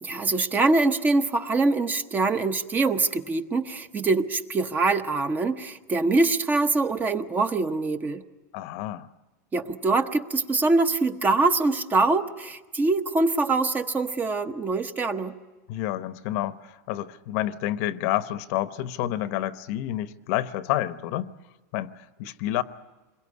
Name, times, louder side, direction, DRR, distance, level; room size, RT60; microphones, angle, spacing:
voice 1, 0.0-8.2 9.5-15.3, right 3 dB, 20° right, 1.0 m, -24 dB
voice 2, 8.5-9.1 15.7-21.3 21.7-22.6, left 14 dB, 55° left, 1.0 m, -29 dB
27.0 x 22.0 x 9.6 m
supercardioid pair, 140°, 10 cm